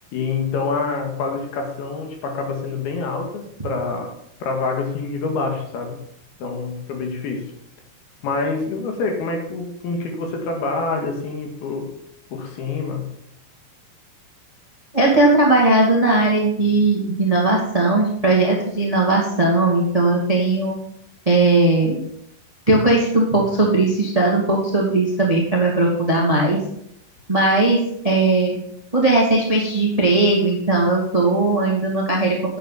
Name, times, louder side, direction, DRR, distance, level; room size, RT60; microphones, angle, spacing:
voice 1, 0.1-4.1 4.4-6.0 6.4-7.5 8.2-11.9 12.3-13.0, left 4 dB, 70° left, 3 dB, 3.7 m, -26 dB
voice 2, 14.9-20.8 21.2-22.0 22.7-26.6 27.3-28.5 28.9-32.6, right 2 dB, 20° right, -1 dB, 1.0 m, -18 dB
9.9 x 8.4 x 5.8 m, 0.74 s
omnidirectional pair, 4.8 m